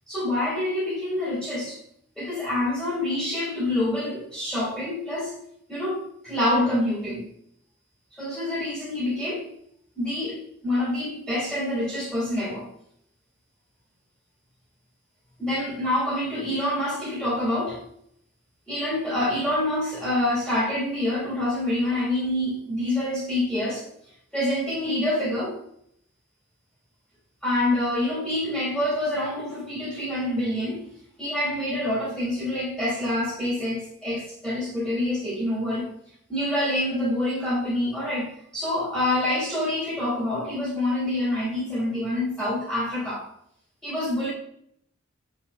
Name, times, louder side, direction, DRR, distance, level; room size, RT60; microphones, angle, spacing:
voice 1, 0.1-1.8 2.2-5.3 5.7-7.3 8.1-9.5 10.0-12.7 15.4-17.8 18.7-23.8 24.3-25.6 27.4-30.8 31.2-35.9 36.3-43.3 43.8-44.3, left 1 dB, 5° left, -5 dB, 3.0 m, -26 dB
7.6 x 4.7 x 4.2 m, 0.69 s
head